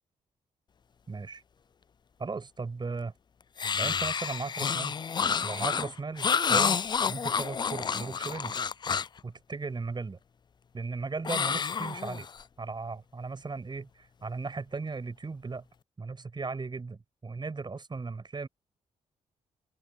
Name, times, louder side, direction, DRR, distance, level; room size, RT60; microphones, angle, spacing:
voice 1, 1.1-1.4 2.2-3.1 3.8-5.0 5.4-8.6 9.2-10.2 10.7-12.3 12.6-15.6 16.0-18.5, right 4 dB, 35° right, 6.1 m, -37 dB
sound 1, 3.6-9.2 11.2-12.4, left 6 dB, 35° left, 0.4 m, -29 dB
open air
cardioid pair, 75°, 13 cm